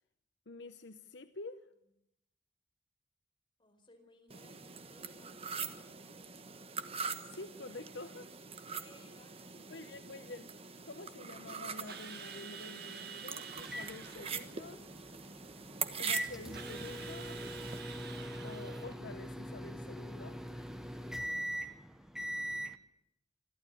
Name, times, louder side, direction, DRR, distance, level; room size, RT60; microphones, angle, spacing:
voice 1, 0.5-1.6 7.3-8.3 9.7-14.8 16.0-17.5 18.4-20.7, left 2 dB, 70° left, 0.9 m, -48 dB
voice 2, 3.6-5.8 8.7-9.9 20.8-21.9, left 1 dB, 25° left, 4.8 m, -63 dB
sound 1, 4.3-17.8, right 6 dB, 35° right, 1.3 m, -43 dB
Drill, 11.9-14.6 16.5-19.0, right 7 dB, 60° right, 2.1 m, -48 dB
sound 2, 13.6-22.8, equal, 5° right, 1.1 m, -42 dB
27.0 x 12.5 x 10.0 m
head